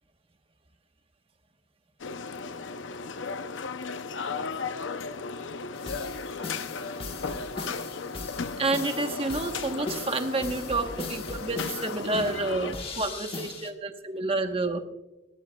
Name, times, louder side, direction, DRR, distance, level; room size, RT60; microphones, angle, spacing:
sound 1, 2.0-12.7, left 4 dB, 80° left, 0.6 m, -35 dB
sound 2, 5.8-13.7, left 3 dB, 30° left, 1.4 m, -39 dB
voice 1, 8.6-14.8, right 2 dB, 30° right, 6 dB, 1.1 m, -29 dB
20.5 x 18.0 x 2.3 m, 1.0 s
head